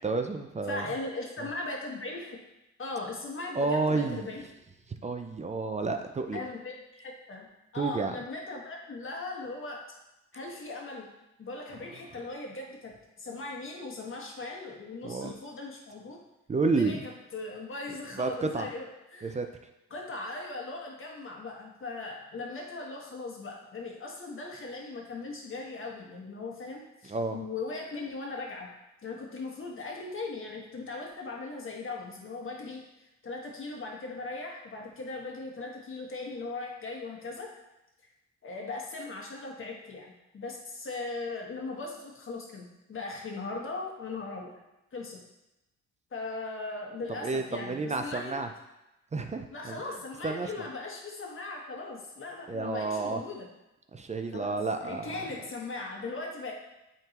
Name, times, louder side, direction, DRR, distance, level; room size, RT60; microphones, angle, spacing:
voice 1, 0.0-0.8 3.5-4.3 5.0-6.4 7.8-8.2 15.0-15.3 16.5-17.0 18.1-18.7 19.2-19.5 27.0-27.4 47.2-48.5 49.1-49.8 50.2-50.6 52.5-53.2 53.9-55.1, right 3 dB, 25° right, 6 dB, 0.5 m, -30 dB
voice 2, 0.7-2.4 2.8-4.4 6.3-7.5 7.7-9.8 10.3-11.1 11.4-16.2 16.6-17.0 17.3-19.4 19.9-28.7 29.0-32.8 33.2-37.5 38.4-44.5 44.9-45.2 46.1-48.3 49.5-53.5 54.3-56.5, left 3 dB, 45° left, -1 dB, 1.5 m, -39 dB
8.8 x 3.7 x 3.0 m, 0.95 s
cardioid pair, 90°, 30 cm